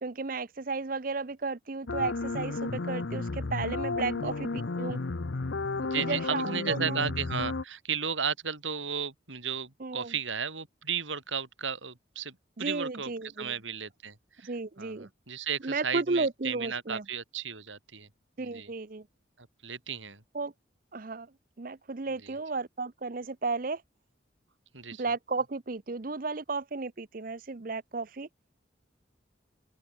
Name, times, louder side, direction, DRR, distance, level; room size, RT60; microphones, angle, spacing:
voice 1, 0.0-5.0 6.0-7.1 9.8-10.1 12.6-13.5 14.4-15.1 15.6-17.0 18.4-19.0 20.3-20.5 20.9-21.3 21.6-23.8 25.0-28.3, right 3 dB, 45° right, 0.7 m, -33 dB
sound 1, 1.9-7.6, left 3 dB, 75° left, 0.8 m, -33 dB
voice 2, 5.8-13.1 13.4-18.1 18.4-18.7 19.4-20.2 22.2-22.4 24.7-25.0, right 6 dB, 90° right, 4.4 m, -35 dB
open air
head